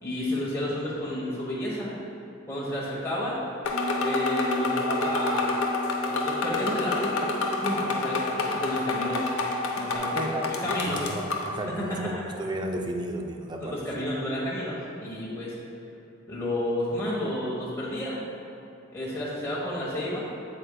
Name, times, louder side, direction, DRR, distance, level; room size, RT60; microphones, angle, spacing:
voice 1, 0.0-1.9 2.5-3.4 4.0-5.6 6.0-7.3 7.6-9.3 9.8-11.0 11.7-11.8 13.6-15.5 16.3-18.2 18.9-20.3, left 1 dB, 10° left, -8 dB, 1.0 m, -31 dB
sound 1, 3.6-11.5, left 3 dB, 85° left, 0.7 m, -28 dB
Bass guitar, 3.7-10.0, left 1 dB, 40° left, 0.9 m, -37 dB
voice 2, 10.2-13.8, right 1 dB, 20° right, 3 dB, 0.4 m, -33 dB
8.0 x 7.8 x 2.2 m, 2.8 s
head